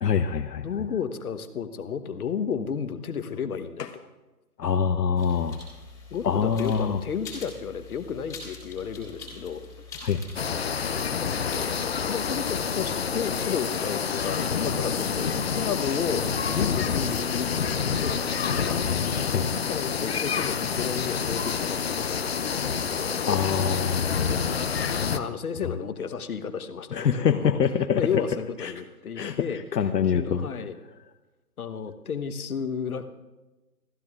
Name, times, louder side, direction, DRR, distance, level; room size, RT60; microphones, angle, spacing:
voice 1, 0.0-0.6 3.8-3.9 4.6-5.6 6.2-7.0 10.0-10.2 19.2-19.6 23.3-24.3 26.9-28.0 28.6-28.7 29.2-30.5, left 7 dB, 80° left, 8 dB, 0.9 m, -25 dB
voice 2, 0.6-4.1 6.1-9.6 11.1-15.3 15.6-17.5 17.9-18.9 19.5-23.4 25.1-27.6 27.9-29.6 30.1-30.7 31.6-33.1, left 7 dB, 60° left, 10 dB, 1.2 m, -32 dB
sound 1, 5.2-12.7, left 4 dB, 5° left, 2.0 m, -45 dB
sound 2, 10.4-25.2, left 6 dB, 40° left, 0.6 m, -28 dB
28.0 x 13.5 x 2.4 m, 1.1 s
figure-of-eight pair, 150°, 48 cm